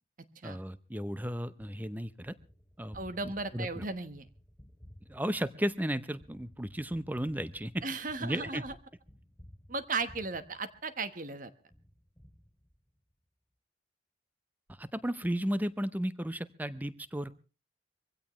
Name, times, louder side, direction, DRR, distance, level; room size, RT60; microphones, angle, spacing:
voice 1, 0.4-2.3 2.8-3.0 3.5-3.8 5.1-7.8 8.2-8.6 14.8-17.3, equal, 10° right, 14 dB, 0.7 m, -34 dB
Gunshot gunfire, 1.9-11.3 11.7-13.1, equal, 10° left, 2.8 m, -57 dB
voice 2, 2.9-4.3 7.8-8.7 9.7-11.5, right 3 dB, 45° right, 11 dB, 1.2 m, -36 dB
23.5 x 16.0 x 3.1 m, 0.33 s
head